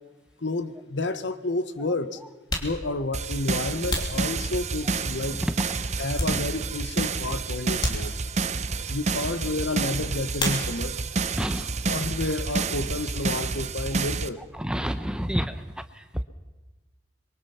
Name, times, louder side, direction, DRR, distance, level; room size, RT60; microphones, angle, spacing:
voice 1, 0.4-2.2 2.6-5.4 6.0-8.1 8.9-11.0 11.9-14.4, left 2 dB, 75° left, 11 dB, 1.2 m, -30 dB
sound 1, 0.6-0.7 1.6-1.7 2.3-5.0 5.5-6.9 7.2-7.3 7.8-8.6 10.3-11.1 11.4-12.1 12.3-14.5, left 1 dB, 25° left, 3.1 m, -35 dB
sound 2, 3.1-14.3, right 4 dB, 35° right, 0.7 m, -29 dB
voice 2, 11.4-11.7 14.5-15.6 15.9-16.2, equal, 5° right, 10 dB, 0.8 m, -29 dB
24.5 x 23.0 x 5.8 m, 1.2 s
head